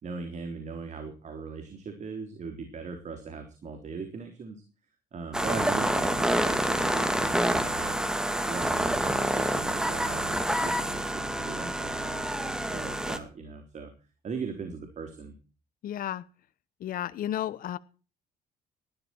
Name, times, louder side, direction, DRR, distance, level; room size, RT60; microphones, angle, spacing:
voice 1, 0.0-4.6 5.1-8.0 8.4-13.9 14.2-15.3, right 4 dB, 45° right, 5 dB, 3.8 m, -39 dB
sound 1, 5.3-13.2, right 1 dB, 5° right, 2.3 m, -27 dB
voice 2, 15.8-16.2 16.8-17.8, left 11 dB, 60° left, 15 dB, 1.0 m, -32 dB
19.0 x 13.0 x 4.6 m, 0.37 s
cardioid pair, 110°, 17 cm